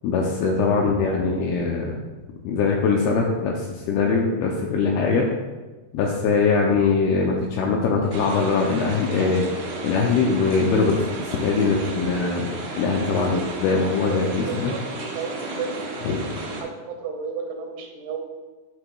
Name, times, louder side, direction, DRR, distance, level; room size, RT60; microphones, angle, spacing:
voice 1, 0.0-2.0 2.4-5.3 5.9-9.4 9.8-12.5 12.8-14.7 16.0-16.2, left 4 dB, 80° left, 0 dB, 2.4 m, -22 dB
sound 1, 8.1-16.6, right 2 dB, 70° right, 3.4 m, -33 dB
voice 2, 14.0-14.8 15.1-15.8 16.5-18.2, right 5 dB, 90° right, 2 dB, 3.1 m, -32 dB
11.5 x 4.7 x 2.3 m, 1.2 s
omnidirectional pair, 4.7 m